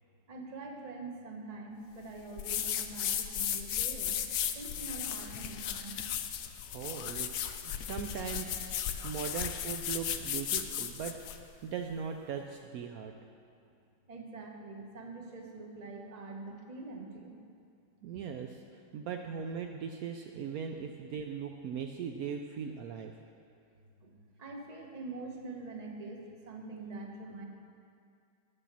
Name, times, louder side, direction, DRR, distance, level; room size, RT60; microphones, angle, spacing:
voice 1, 0.3-4.2 4.5-6.0 13.6-13.7 14.1-17.4 24.0-24.1 24.4-27.5, right 3 dB, 30° right, 2 dB, 0.7 m, -44 dB
sound 1, 2.4-11.4, left 9 dB, 85° left, 0.7 m, -35 dB
voice 2, 6.7-7.3 7.6-11.1 11.6-13.1 18.0-23.2, right 7 dB, 85° right, 4 dB, 0.7 m, -39 dB
9.8 x 6.6 x 7.3 m, 2.4 s
omnidirectional pair, 2.1 m